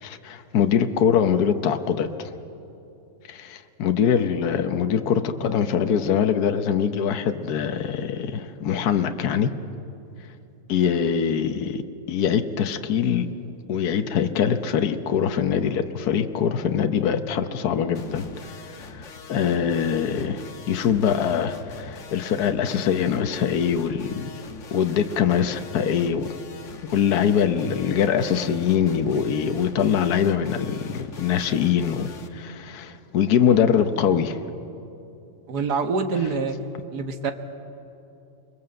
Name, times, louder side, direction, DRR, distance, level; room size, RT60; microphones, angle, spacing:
voice 1, 0.0-2.3 3.3-9.5 10.7-11.8 12.1-13.3 13.7-18.2 18.6-24.3 24.7-26.3 26.9-34.4, left 8 dB, 70° left, 8 dB, 1.4 m, -23 dB
sound 1, 17.9-32.3, left 5 dB, 50° left, 1.5 m, -43 dB
voice 2, 35.5-36.5 36.9-37.3, right 4 dB, 70° right, 7 dB, 1.9 m, -25 dB
28.0 x 21.5 x 7.8 m, 2.9 s
omnidirectional pair, 1.8 m